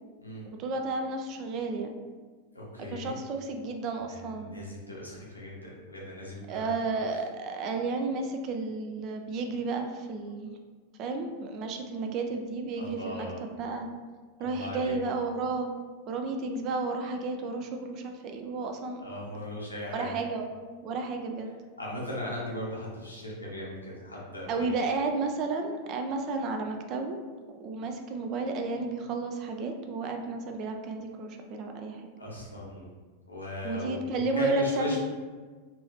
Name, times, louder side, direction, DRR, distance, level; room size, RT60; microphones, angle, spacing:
voice 1, 0.5-2.0 2.8-4.6 6.5-10.6 11.0-13.9 14.4-15.7 16.1-19.0 19.9-21.5 24.5-27.2 27.6-32.1 33.6-35.0, right 3 dB, 35° right, 4 dB, 0.4 m, -32 dB
voice 2, 2.5-3.1 4.1-6.7 12.8-13.4 14.4-15.0 19.0-20.1 21.8-24.7 32.2-32.9 33.3-35.0, left 1 dB, 80° left, -4 dB, 0.8 m, -38 dB
3.0 x 2.7 x 3.2 m, 1.5 s
figure-of-eight pair, 90°, 0 cm